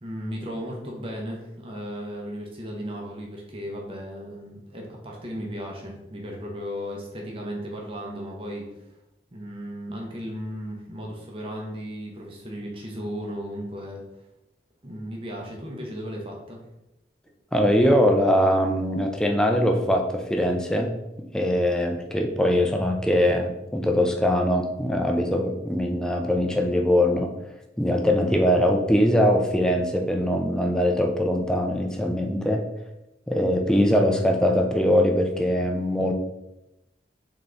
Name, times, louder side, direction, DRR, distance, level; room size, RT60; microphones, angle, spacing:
voice 1, 0.0-8.7 9.3-14.0 14.8-16.6, equal, 30° right, -1 dB, 0.7 m, -35 dB
voice 2, 17.5-20.9 21.3-27.3 27.8-32.6 33.3-36.1, equal, 5° left, 3 dB, 0.4 m, -22 dB
3.7 x 3.7 x 3.3 m, 0.91 s
head